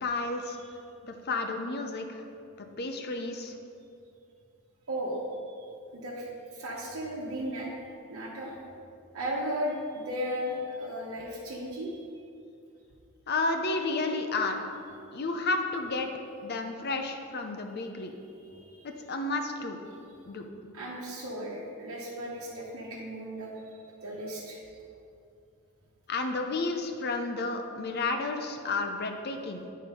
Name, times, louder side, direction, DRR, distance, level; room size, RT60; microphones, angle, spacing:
voice 1, 0.0-0.6 1.0-2.2 2.6-3.5 13.3-14.6 15.1-16.1 16.4-18.2 18.8-19.8 20.3-20.5 26.1-29.6, left 3 dB, 50° left, 5 dB, 0.6 m, -31 dB
voice 2, 4.9-5.2 5.5-7.7 8.1-8.5 9.1-12.0 18.4-18.9 20.7-23.6 24.0-24.6, equal, 80° right, -4 dB, 1.1 m, -36 dB
9.1 x 4.3 x 5.0 m, 2.6 s
head